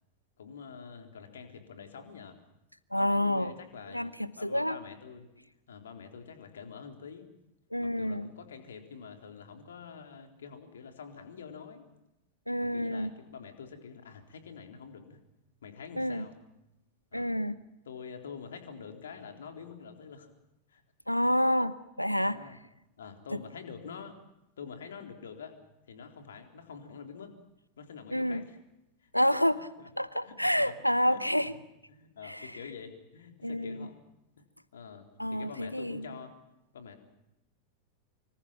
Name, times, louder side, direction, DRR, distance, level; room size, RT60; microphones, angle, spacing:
voice 1, 0.4-2.4 2.9-4.1 4.4-5.3 5.7-7.3 7.8-11.8 12.7-15.2 15.6-16.3 17.1-17.4 17.9-20.3 20.7-20.8 22.2-22.6 23.0-24.2 24.6-25.5 25.9-27.3 27.8-28.6 29.0-29.1 29.8-29.9 30.2-30.7 31.1-31.5 31.9-34.0 34.7-36.3 36.7-37.0, left 6 dB, 65° left, 5 dB, 3.9 m, -46 dB
voice 2, 2.9-3.5 3.9-4.8 7.7-8.3 12.5-13.1 16.0-16.3 17.1-17.6 21.1-22.6 23.3-23.4 28.1-28.4 29.1-29.7 30.0-31.5 32.2-32.5 33.4-33.9 35.2-36.1, equal, 90° left, 17 dB, 0.9 m, -29 dB
26.0 x 25.0 x 5.9 m, 0.91 s
figure-of-eight pair, 90°, 0 cm